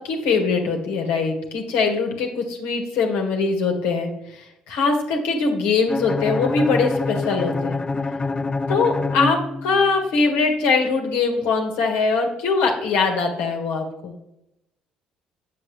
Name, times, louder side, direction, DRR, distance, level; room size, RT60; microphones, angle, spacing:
voice 1, 0.0-7.8 8.7-14.1, left 4 dB, 70° left, 2 dB, 1.5 m, -22 dB
Bowed string instrument, 5.9-10.0, left 3 dB, 25° left, 0.4 m, -26 dB
8.4 x 6.9 x 3.2 m, 0.84 s
figure-of-eight pair, 50°, 3 cm